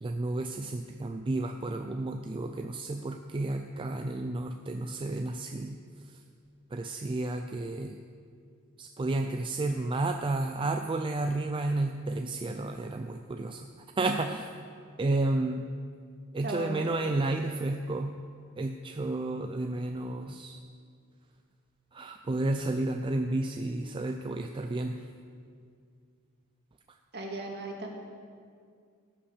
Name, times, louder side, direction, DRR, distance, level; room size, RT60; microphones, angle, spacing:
voice 1, 0.0-5.8 6.1-6.2 6.7-8.0 8.8-13.7 14.0-14.5 15.0-15.7 16.3-18.2 18.6-20.6 21.9-25.0, right 2 dB, 25° right, 5 dB, 0.4 m, -31 dB
voice 2, 16.4-16.8 27.1-27.9, right 1 dB, 50° right, 0 dB, 1.9 m, -36 dB
17.0 x 5.8 x 6.6 m, 2.2 s
head